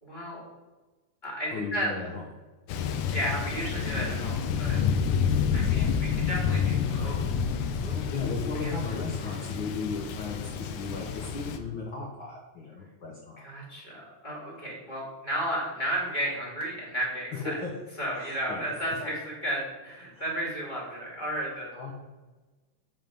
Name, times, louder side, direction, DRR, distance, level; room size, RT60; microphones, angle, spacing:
voice 1, 0.0-0.5 1.2-1.9 2.8-4.8 5.5-7.3 7.8-8.2 8.6-8.7 13.4-17.6 18.0-21.7, right 1 dB, 15° left, -5 dB, 2.3 m, -33 dB
voice 2, 1.5-2.2 5.7-6.0 8.1-13.5 17.3-17.7 18.2-18.7 20.1-20.2 21.7-21.9, left 4 dB, 65° left, -1 dB, 1.2 m, -36 dB
Thunder, 2.7-11.6, left 7 dB, 90° left, 2.2 m, -29 dB
7.9 x 5.7 x 5.2 m, 1.2 s
omnidirectional pair, 3.6 m